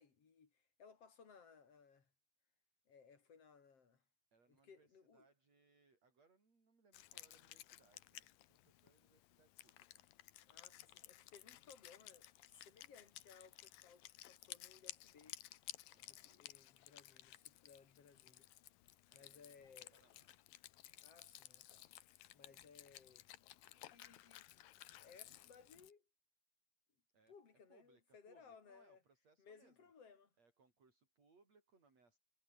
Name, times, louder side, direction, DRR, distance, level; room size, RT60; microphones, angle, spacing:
voice 1, 0.0-2.1 2.9-4.0 4.5-5.3 10.5-15.4 16.1-18.5 19.1-20.0 21.0-23.3 23.7-26.0 27.3-29.0 29.4-30.3, left 6 dB, 45° left, 4.2 m, -63 dB
voice 2, 4.3-10.0 15.9-16.4 19.1-20.3 27.1-27.3 27.7-29.9 30.4-32.2, right 4 dB, 45° right, 7.4 m, -73 dB
Wind instrument woodwind instrument, 6.9-25.9, left 15 dB, 80° left, 2.8 m, -57 dB
omnidirectional pair, 4.1 m